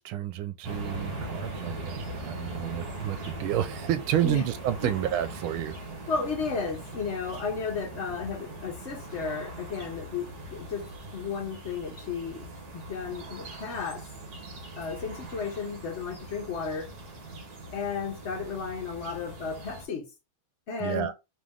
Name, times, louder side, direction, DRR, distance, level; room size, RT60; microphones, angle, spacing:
voice 1, 0.0-5.8 20.8-21.1, right 11 dB, 80° right, 1.4 m, -30 dB
sound 1, 0.6-19.9, right 1 dB, 50° right, 1.8 m, -40 dB
voice 2, 6.1-14.0 14.8-16.9 17.7-20.1 20.7-21.1, left 5 dB, 45° left, 0.9 m, -34 dB
4.1 x 3.1 x 3.6 m
omnidirectional pair, 2.3 m